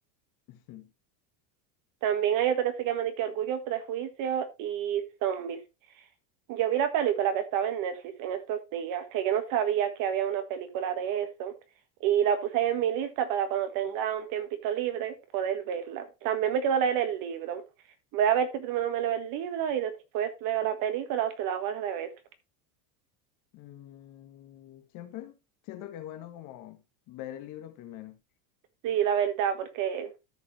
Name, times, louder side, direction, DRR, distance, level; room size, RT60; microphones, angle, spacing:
voice 1, 0.5-0.9 23.5-25.3 25.6-28.2, left 12 dB, 45° left, 1.6 m, -44 dB
voice 2, 2.0-5.6 6.5-11.5 12.0-17.6 18.1-22.1 28.8-30.1, right 9 dB, 45° right, 1.6 m, -29 dB
13.5 x 5.3 x 3.1 m
cardioid pair, 165°, 45 cm